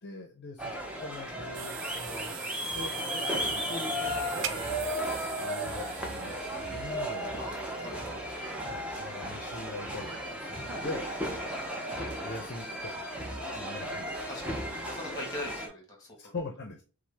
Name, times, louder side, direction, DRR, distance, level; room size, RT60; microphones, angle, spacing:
voice 1, 0.0-2.3 2.7-2.9 3.4-4.9 5.4-7.4 8.7-11.1 12.0-13.1 13.5-14.4 16.2-16.8, left 2 dB, 45° left, 3 dB, 0.6 m, -43 dB
sound 1, 0.6-15.7, equal, 5° right, 0.6 m, -35 dB
sound 2, 1.5-8.3, right 9 dB, 55° right, 0.3 m, -42 dB
voice 2, 7.8-8.2 14.3-16.3, left 1 dB, 15° left, 0 dB, 1.4 m, -41 dB
6.0 x 2.0 x 3.3 m, 0.36 s
head